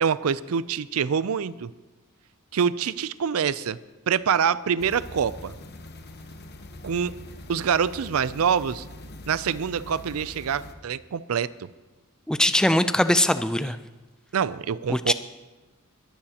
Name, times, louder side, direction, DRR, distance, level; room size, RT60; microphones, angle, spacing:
voice 1, 0.0-1.7 2.5-3.8 4.1-5.5 6.8-7.1 7.5-8.9 9.3-11.7 14.3-15.1, right 7 dB, 70° right, 17 dB, 0.4 m, -25 dB
sound 1, 4.8-10.7, left 1 dB, 45° left, 1.0 m, -43 dB
voice 2, 12.3-13.8 14.9-15.1, left 1 dB, 5° left, 11 dB, 0.4 m, -21 dB
21.5 x 12.0 x 2.9 m, 1.1 s
head